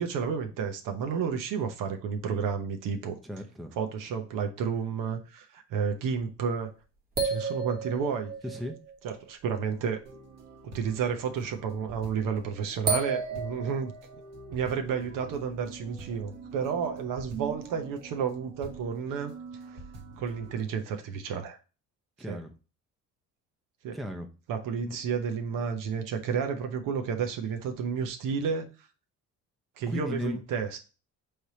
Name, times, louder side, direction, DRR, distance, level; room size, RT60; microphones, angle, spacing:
voice 1, 0.0-3.2 3.8-6.7 7.2-8.3 9.0-10.0 10.7-13.9 14.5-19.3 19.7-19.8 20.2-21.6 22.3-22.4 23.8-24.0 24.5-28.7 29.8-30.8, right 6 dB, 70° right, 0.8 m, -31 dB
voice 2, 3.2-3.8 8.4-8.8 22.2-22.5 23.9-24.3 24.9-25.0 29.9-30.4, left 1 dB, ahead, 0.6 m, -36 dB
sound 1, 7.2-9.1 11.5-11.6 12.9-14.3, right 4 dB, 25° right, 1.1 m, -32 dB
sound 2, 10.0-20.6, right 5 dB, 50° right, 1.2 m, -45 dB
4.5 x 3.3 x 2.7 m
cardioid pair, 100°, 34 cm